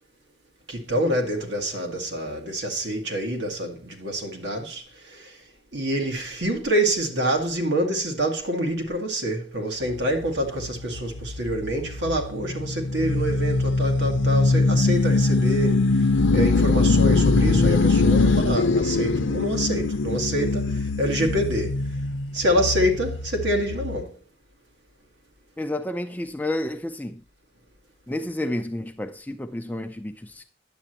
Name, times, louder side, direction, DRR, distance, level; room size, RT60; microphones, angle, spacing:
voice 1, 0.7-4.8 5.1-5.2 5.7-15.9 16.3-20.7 21.0-21.7 22.3-24.1, right 1 dB, 70° right, 1.8 m, -26 dB
sound 1, 9.9-24.0, left 3 dB, 90° left, 0.7 m, -22 dB
voice 2, 25.6-27.2 28.1-30.4, left 1 dB, 10° left, 0.5 m, -30 dB
9.8 x 7.8 x 2.9 m
head